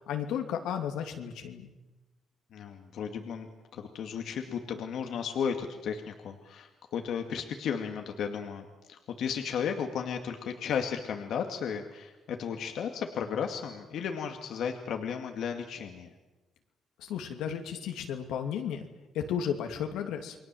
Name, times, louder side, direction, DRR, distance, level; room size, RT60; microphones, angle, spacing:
voice 1, 0.1-1.7 17.0-18.8 19.1-20.3, left 8 dB, 90° left, 4 dB, 2.7 m, -33 dB
voice 2, 2.5-16.1, left 7 dB, 75° left, 4 dB, 2.2 m, -34 dB
29.0 x 21.5 x 7.6 m, 1.1 s
cardioid pair, 90°, 0 cm